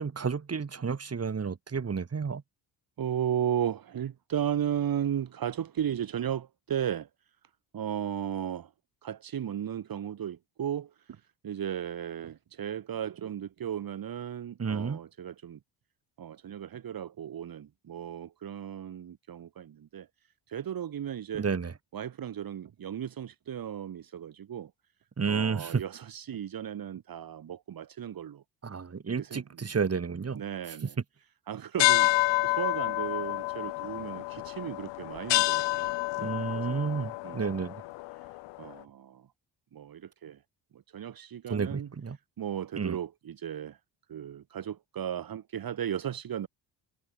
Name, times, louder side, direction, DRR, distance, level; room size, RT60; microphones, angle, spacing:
voice 1, 0.0-2.4 14.6-15.0 21.4-21.7 25.2-25.8 28.6-30.4 30.8-30.9 36.2-37.8 41.5-42.2 42.7-43.0, right 5 dB, 35° right, 3.9 m, -31 dB
voice 2, 3.0-7.1 7.7-8.7 9.0-15.6 16.2-20.1 20.5-21.5 21.9-24.7 25.3-28.4 29.2-29.4 30.3-31.0 31.5-32.1 32.4-36.9 37.2-37.5 38.1-39.3 39.7-40.4 40.7-41.9 42.4-43.8 44.1-46.5, right 9 dB, 50° right, 2.2 m, -35 dB
sound 1, 31.8-38.7, left 20 dB, 80° left, 0.6 m, -29 dB
cardioid pair, 85°, 43 cm